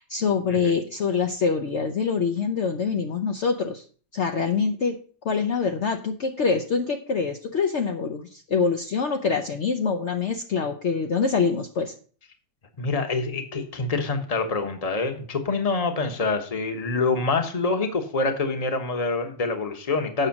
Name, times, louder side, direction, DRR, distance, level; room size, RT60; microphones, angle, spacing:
voice 1, 0.0-3.8 4.1-5.0 5.2-11.9, left 5 dB, 65° left, 4 dB, 0.7 m, -25 dB
voice 2, 12.8-20.3, left 3 dB, 25° left, 6 dB, 0.8 m, -26 dB
8.0 x 6.2 x 5.8 m, 0.43 s
omnidirectional pair, 2.1 m